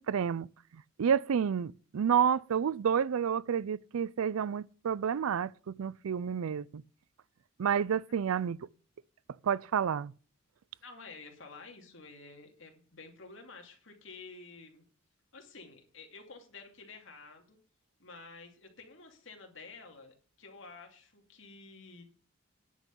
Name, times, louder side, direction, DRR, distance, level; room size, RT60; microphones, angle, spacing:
voice 1, 0.1-0.5 1.0-6.8 7.6-8.6 9.4-10.1, right 7 dB, 90° right, 0.4 m, -29 dB
voice 2, 10.8-14.8 15.3-17.6 18.0-22.0, left 4 dB, 65° left, 2.6 m, -51 dB
10.5 x 6.1 x 8.2 m
head